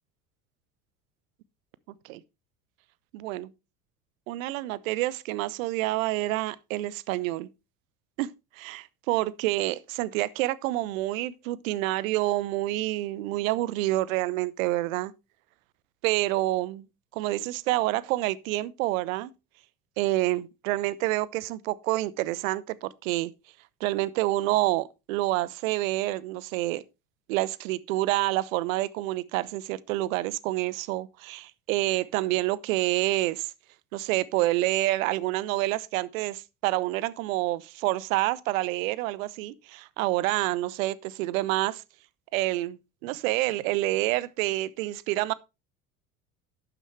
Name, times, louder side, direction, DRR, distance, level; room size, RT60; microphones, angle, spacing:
voice 1, 3.1-3.5 4.3-7.5 8.2-8.3 8.6-15.1 16.0-16.9 17.1-19.3 20.0-23.3 23.8-26.8 27.3-33.5 33.9-41.8 42.3-45.3, right 17 dB, 60° right, 0.9 m, -28 dB
12.0 x 9.0 x 3.2 m
figure-of-eight pair, 70°, 46 cm